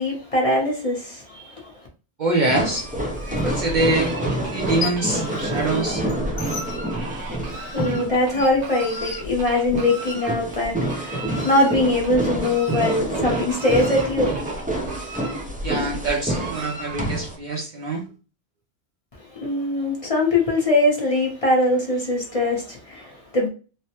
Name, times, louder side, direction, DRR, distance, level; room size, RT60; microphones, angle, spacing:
voice 1, 0.0-1.7 7.2-14.4 19.3-23.5, left 2 dB, 35° left, 0.7 m, -22 dB
voice 2, 2.2-2.9 3.3-4.1 4.5-6.0 15.6-18.0, right 2 dB, 50° right, 0.6 m, -24 dB
sound 1, 2.4-17.3, right 1 dB, 10° right, 0.4 m, -28 dB
Fowl, 2.6-17.3, right 1 dB, 90° right, 1.2 m, -36 dB
sound 2, 3.3-3.4 4.5-5.2 5.5-9.9, left 4 dB, 85° left, 1.0 m, -36 dB
3.1 x 2.0 x 2.8 m
omnidirectional pair, 1.1 m